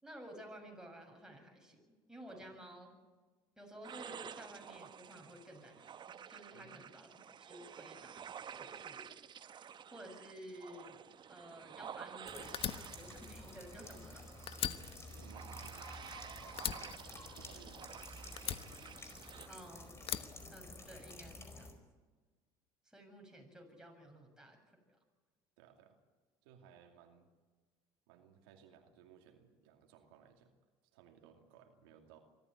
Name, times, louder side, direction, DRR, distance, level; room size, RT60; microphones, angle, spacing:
voice 1, 0.0-1.8 2.1-2.9 3.6-9.1 9.9-14.2 19.5-21.7 22.9-24.8, equal, 5° right, 1 dB, 7.0 m, -53 dB
sound 1, 3.8-19.5, right 8 dB, 40° right, 0.9 m, -51 dB
sound 2, 12.2-21.7, left 1 dB, 20° left, 4.6 m, -51 dB
Fire, 12.5-14.2 14.5-16.2 16.6-17.9 18.4-19.5 20.0-21.2, left 10 dB, 50° left, 1.2 m, -41 dB
voice 2, 13.8-14.1 15.1-17.0 17.3-18.1 25.6-26.0 26.4-27.3 28.1-30.5 30.9-32.2, right 8 dB, 85° right, 4 dB, 2.5 m, -61 dB
24.0 x 14.0 x 9.4 m, 1.3 s
supercardioid pair, 85°, 12 cm